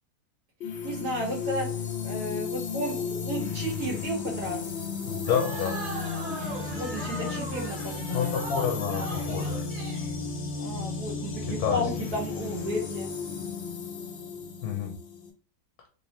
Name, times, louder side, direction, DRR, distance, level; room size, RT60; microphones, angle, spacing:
sound 1, 0.6-15.3, left 5 dB, 50° left, 0.9 m, -34 dB
voice 1, 0.8-1.7 2.0-4.6 6.6-8.4 10.6-13.1, right 1 dB, 90° right, -3 dB, 1.6 m, -33 dB
voice 2, 5.1-5.8 8.1-9.7 11.4-11.9 14.6-15.0, left 7 dB, 75° left, 2 dB, 1.3 m, -29 dB
sound 2, 5.2-10.1, right 3 dB, 50° right, 1.1 m, -39 dB
3.5 x 2.8 x 3.2 m, 0.39 s
omnidirectional pair, 1.6 m